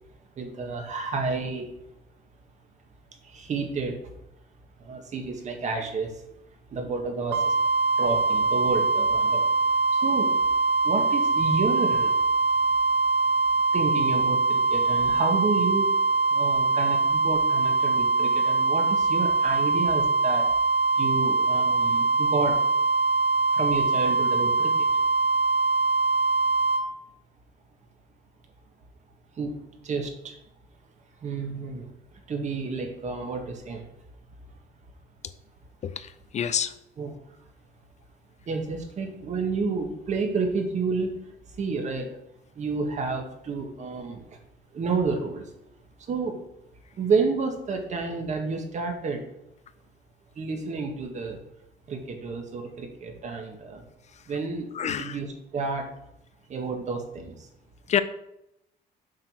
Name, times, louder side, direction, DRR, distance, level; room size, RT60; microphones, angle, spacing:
voice 1, 0.4-1.7 3.2-4.0 4.8-6.1 6.7-7.5 8.0-9.5 9.9-10.4 10.8-12.2 13.7-15.9 16.3-20.4 21.0-22.6 23.5-24.9 29.4-29.6 29.8-30.4 31.2-31.9 32.3-33.8 37.0-37.2 38.5-41.2 41.6-42.2 42.5-44.4 44.7-45.5 46.1-46.4 47.0-49.2 50.4-51.4 51.9-53.8 54.3-55.9 56.5-57.5, right 4 dB, 45° right, 4 dB, 1.7 m, -30 dB
sound 1, 7.3-26.8, right 3 dB, 85° right, 1.1 m, -23 dB
voice 2, 35.8-36.7 54.7-55.2 57.9-58.0, left 8 dB, 45° left, 13 dB, 0.5 m, -27 dB
7.4 x 4.6 x 6.0 m, 0.82 s
cardioid pair, 110°, 17 cm